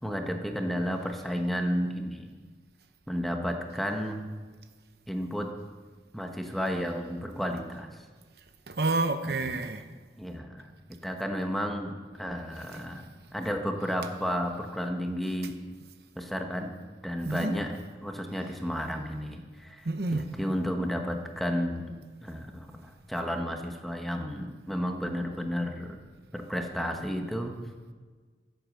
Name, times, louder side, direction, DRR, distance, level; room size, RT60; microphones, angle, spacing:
voice 1, 0.0-2.3 3.1-4.2 5.1-5.5 6.1-7.9 9.3-9.6 10.2-10.7 11.0-13.0 13.3-15.5 16.2-16.7 17.0-17.7 18.0-19.9 20.1-21.9 22.2-26.0 26.3-27.5, equal, ahead, 3 dB, 1.1 m, -32 dB
voice 2, 8.7-9.9 17.2-17.5 19.8-20.3, right 2 dB, 60° right, 8 dB, 0.8 m, -29 dB
14.5 x 8.1 x 6.6 m, 1.5 s
head